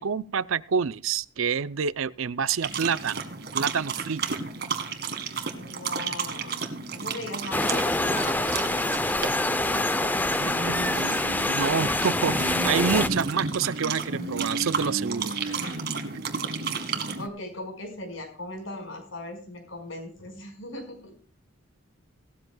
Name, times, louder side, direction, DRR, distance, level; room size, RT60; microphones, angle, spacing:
voice 1, 0.0-4.4 10.4-10.7 11.0-15.6, right 6 dB, 80° right, 17 dB, 0.5 m, -28 dB
sound 1, 2.6-17.3, right 4 dB, 50° right, 1.8 m, -32 dB
voice 2, 5.5-10.8 11.5-11.6 15.5-15.8 17.1-21.1, left 1 dB, 75° left, 4 dB, 5.3 m, -39 dB
sound 2, 7.5-13.1, left 2 dB, 10° left, 0.6 m, -26 dB
17.5 x 13.0 x 2.3 m, 0.43 s
head